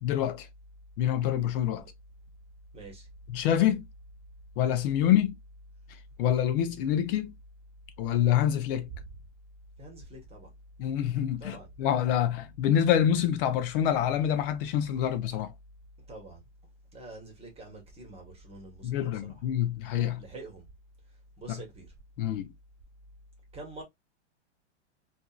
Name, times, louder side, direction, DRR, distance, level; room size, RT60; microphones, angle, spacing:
voice 1, 0.0-0.5 1.0-1.8 3.3-3.9 4.6-5.3 6.2-7.3 8.0-8.9 10.8-15.5 18.8-20.2 21.5-21.6 22.2-22.5, left 10 dB, 50° left, 0.7 m, -26 dB
voice 2, 2.7-3.1 9.8-10.5 11.4-11.7 16.1-16.4 16.9-19.0 19.3-19.4 20.1-20.7 21.4-21.9 23.5-23.8, right 2 dB, 15° right, 1.1 m, -46 dB
2.6 x 2.5 x 2.3 m
hypercardioid pair, 120°, 35 cm